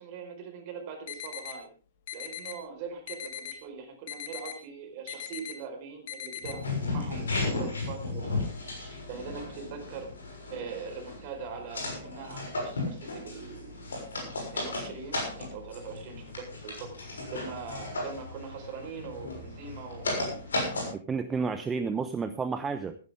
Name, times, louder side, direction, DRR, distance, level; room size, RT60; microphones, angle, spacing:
voice 1, 0.0-1.7 2.1-10.1 10.5-14.0 14.5-17.0 17.3-20.3, right 6 dB, 40° right, 6 dB, 4.6 m, -42 dB
sound 1, 1.1-1.6 2.1-2.6 3.1-3.6 4.1-4.6 5.1-5.5 6.1-6.5, left 11 dB, 50° left, 1.8 m, -39 dB
sound 2, 6.4-20.9, left 2 dB, 70° left, 6.6 m, -35 dB
voice 2, 20.9-23.0, right 5 dB, 15° right, 10 dB, 0.8 m, -31 dB
15.0 x 15.0 x 3.6 m, 0.37 s
figure-of-eight pair, 110°, 0 cm